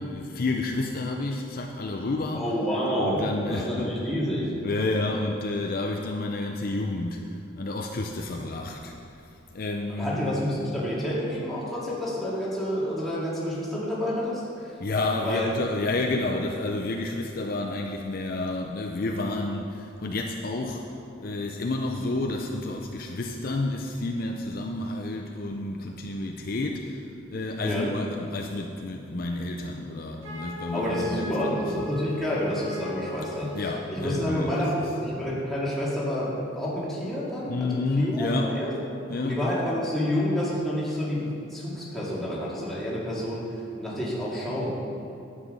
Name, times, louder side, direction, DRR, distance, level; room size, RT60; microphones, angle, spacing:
voice 1, 0.0-2.4 3.0-3.9 4.6-8.9 9.5-10.3 14.8-20.8 21.2-27.0 27.3-31.8 33.5-34.5 37.5-38.5 39.1-39.4, left 2 dB, 45° left, 2 dB, 0.5 m, -30 dB
voice 2, 2.3-4.6 9.9-14.7 15.2-15.5 27.6-27.9 30.7-33.6 33.9-38.7 39.2-43.5 43.8-44.7, equal, ahead, -8 dB, 2.2 m, -29 dB
Wind instrument woodwind instrument, 30.2-33.9, left 1 dB, 75° right, 2.1 m, -38 dB
10.0 x 8.3 x 5.4 m, 2.8 s
head